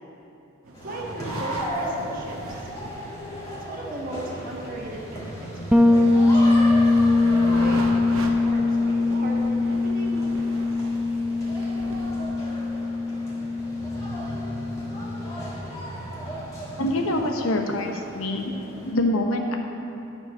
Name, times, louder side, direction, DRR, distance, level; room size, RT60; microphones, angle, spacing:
sound 1, 0.6-12.1, right 2 dB, 75° right, 0.8 m, -41 dB
sound 2, 0.7-18.9, equal, 15° left, 1.8 m, -35 dB
voice 1, 0.8-2.7 3.7-6.5 7.4-10.5, right 1 dB, 40° right, -2 dB, 1.2 m, -37 dB
Bass guitar, 5.7-15.4, left 2 dB, 5° right, 0.3 m, -22 dB
voice 2, 16.8-18.5 18.8-19.6, left 1 dB, 75° left, 3 dB, 0.9 m, -25 dB
11.5 x 4.6 x 6.5 m, 2.8 s
head